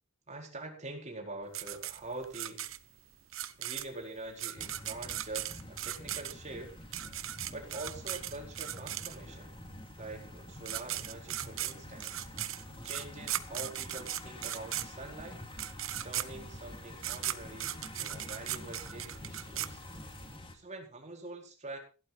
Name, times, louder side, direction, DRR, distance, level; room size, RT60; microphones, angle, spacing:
voice 1, 0.3-2.7 3.6-6.8 7.5-9.6 10.0-12.3 12.8-15.4 16.0-19.8 20.5-21.8, right 2 dB, 35° right, 2 dB, 4.4 m, -45 dB
sound 1, 1.5-9.5 10.3-10.4 10.6-20.3, right 13 dB, 90° right, 1.1 m, -38 dB
sound 2, 4.6-20.6, left 1 dB, 25° left, 2.5 m, -48 dB
16.5 x 11.5 x 4.0 m, 0.34 s
head